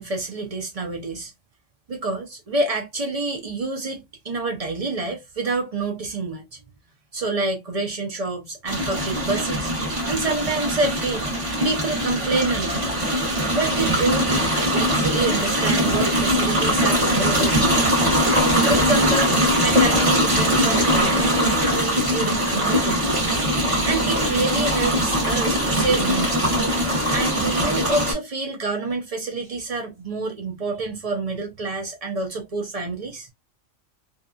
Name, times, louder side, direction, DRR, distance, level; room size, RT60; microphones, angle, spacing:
voice 1, 0.0-1.3 1.9-6.4 7.1-9.7 10.1-13.2 13.5-18.0 18.6-23.3 23.8-26.4 27.1-33.3, right 3 dB, 45° right, 0.4 m, -27 dB
sound 1, 8.7-28.1, equal, 25° right, 1.0 m, -21 dB
2.7 x 2.2 x 2.3 m
omnidirectional pair, 1.4 m